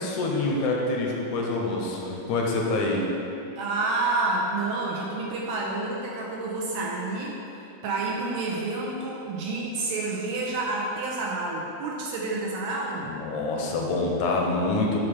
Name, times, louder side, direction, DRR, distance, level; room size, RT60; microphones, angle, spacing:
voice 1, 0.0-3.1 13.1-15.0, left 2 dB, 80° left, -1 dB, 2.0 m, -26 dB
voice 2, 3.6-7.4 7.8-13.1, right 3 dB, 80° right, -3 dB, 1.7 m, -29 dB
6.4 x 2.7 x 5.6 m, 2.8 s
omnidirectional pair, 3.5 m